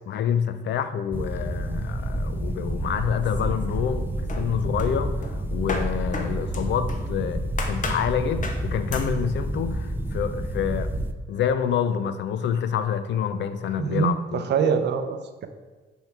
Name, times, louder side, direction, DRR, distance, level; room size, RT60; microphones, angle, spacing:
voice 1, 0.1-10.9 11.3-14.4, left 8 dB, 65° left, 11 dB, 0.5 m, -27 dB
sound 1, 1.1-11.1, right 1 dB, 10° right, 0.4 m, -29 dB
sound 2, 3.2-4.0 4.3-7.1 7.6-8.1 8.4-8.7 8.9-9.2, left 3 dB, 40° left, 0.8 m, -34 dB
voice 2, 13.8-15.5, right 6 dB, 60° right, 8 dB, 0.6 m, -24 dB
5.5 x 4.6 x 4.5 m, 1.3 s
cardioid pair, 90°, 20 cm